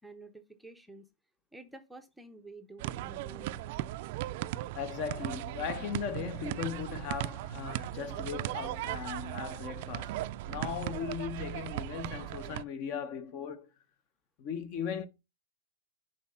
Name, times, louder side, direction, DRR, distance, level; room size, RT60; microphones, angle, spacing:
voice 1, 0.0-1.0 1.5-3.6, right 2 dB, ahead, 0.6 m, -50 dB
sound 1, 2.8-12.6, right 15 dB, 50° right, 0.4 m, -37 dB
voice 2, 4.7-13.7 14.4-15.1, left 7 dB, 40° left, 1.0 m, -38 dB
7.2 x 4.0 x 5.6 m
supercardioid pair, 150°, 0 cm